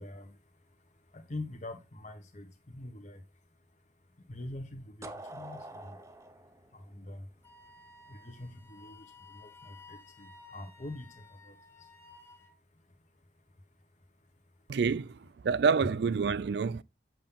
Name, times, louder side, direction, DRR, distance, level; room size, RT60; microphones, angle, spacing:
voice 1, 0.0-14.8, left 2 dB, 40° left, 1.3 m, -47 dB
sound 1, 5.0-7.9, right 1 dB, 15° right, 0.7 m, -46 dB
Wind instrument woodwind instrument, 7.4-12.6, left 3 dB, 15° left, 1.1 m, -55 dB
voice 2, 14.7-15.2 15.4-16.8, right 5 dB, 65° right, 0.4 m, -27 dB
7.7 x 7.1 x 3.6 m
head